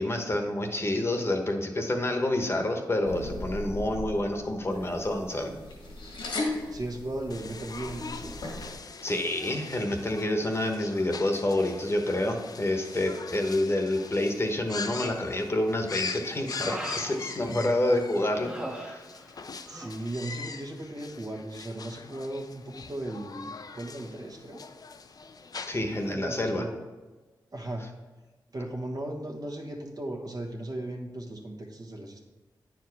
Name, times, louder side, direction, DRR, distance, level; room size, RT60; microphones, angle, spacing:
voice 1, 0.0-5.6 9.0-19.0 25.7-26.6, left 1 dB, 30° left, 4 dB, 1.0 m, -28 dB
sound 1, 3.0-8.7, left 2 dB, 80° left, 1.6 m, -37 dB
voice 2, 6.4-8.5 17.5-17.8 19.7-24.6 25.7-26.8 27.5-27.8 28.5-32.2, right 1 dB, 55° right, 0 dB, 1.4 m, -37 dB
sound 2, 7.3-26.1, left 4 dB, 50° left, 0.5 m, -42 dB
Human voice, 14.7-15.3 15.8-17.9 18.3-19.4 19.7-20.0, right 1 dB, 10° right, 1.0 m, -40 dB
9.0 x 4.9 x 4.6 m, 1.2 s
cardioid pair, 70°, 8 cm